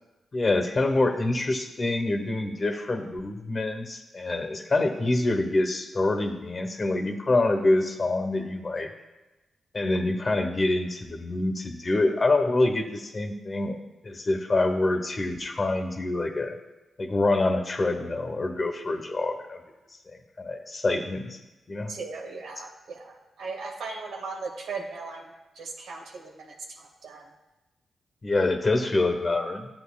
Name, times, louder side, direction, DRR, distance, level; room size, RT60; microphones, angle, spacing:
voice 1, 0.3-8.9 9.7-13.8 14.0-16.5 17.0-19.6 20.1-21.4 21.7-21.9 28.2-29.7, left 2 dB, 40° left, 6 dB, 1.0 m, -26 dB
voice 2, 21.9-27.3, right 4 dB, 85° right, 2 dB, 1.2 m, -38 dB
11.5 x 7.8 x 2.3 m, 1.1 s
cardioid pair, 60°, 0 cm